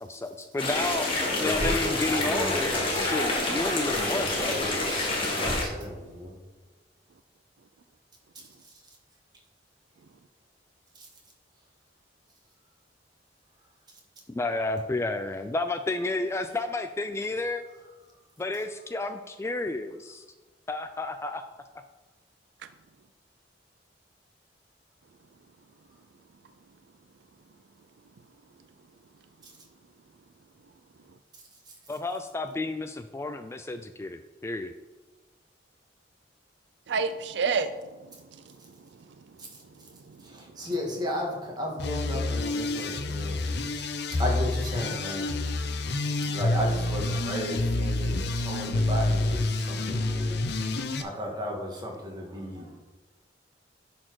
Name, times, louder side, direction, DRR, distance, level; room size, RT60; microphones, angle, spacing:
voice 1, 0.0-4.6 14.3-17.6 18.4-20.2 20.7-21.4 31.9-34.7, left 2 dB, 15° left, 8 dB, 0.3 m, -31 dB
sound 1, 0.6-5.6, left 2 dB, 30° left, 1.7 m, -28 dB
voice 2, 1.3-3.1 3.9-6.3 40.3-45.4 46.3-50.7 51.0-52.8, left 1 dB, 25° right, -1 dB, 1.7 m, -35 dB
sound 2, 1.4-6.3, equal, 40° right, 1.3 m, -40 dB
voice 3, 36.9-37.7, right 5 dB, 70° right, 11 dB, 0.4 m, -26 dB
sound 3, 41.8-51.0, left 2 dB, 65° left, 0.7 m, -28 dB
10.5 x 4.2 x 4.6 m, 1.2 s
head